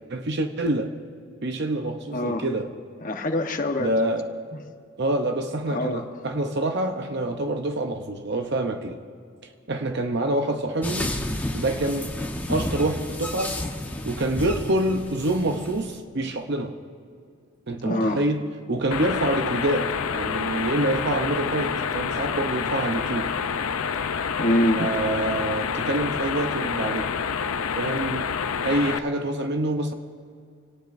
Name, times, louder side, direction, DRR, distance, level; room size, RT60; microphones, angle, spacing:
voice 1, 0.1-0.9 1.4-2.7 3.8-4.3 5.0-9.0 9.7-11.1 11.5-12.1 12.5-13.6 14.0-16.8 17.7-18.4 18.7-23.3 24.8-27.1 27.8-28.3 28.6-29.9, right 1 dB, 50° right, 0.8 m, -26 dB
voice 2, 2.1-2.4 3.0-3.9 4.5-4.6 5.7-6.0 17.8-18.2 24.4-24.9, left 1 dB, 40° left, 1.1 m, -24 dB
sound 1, 10.8-16.0, left 1 dB, 10° left, 1.1 m, -31 dB
sound 2, 18.9-29.0, left 6 dB, 85° left, 0.6 m, -28 dB
27.5 x 18.0 x 2.6 m
head